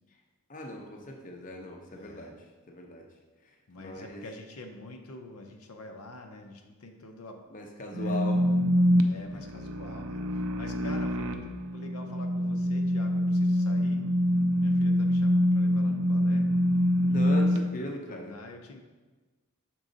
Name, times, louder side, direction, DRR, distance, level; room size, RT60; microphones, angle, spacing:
voice 1, 0.5-2.3 2.7-3.1 3.4-4.2 7.5-8.5 9.3-9.4 17.0-18.4, left 1 dB, 35° left, 1 dB, 0.7 m, -39 dB
voice 2, 1.9-2.3 3.7-7.4 7.9-8.5 9.0-14.0 14.6-16.5 17.2-18.8, left 2 dB, 80° left, 4 dB, 0.7 m, -46 dB
sound 1, 7.9-17.6, equal, 70° right, 0.4 m, -25 dB
6.2 x 4.5 x 3.9 m, 1.3 s
head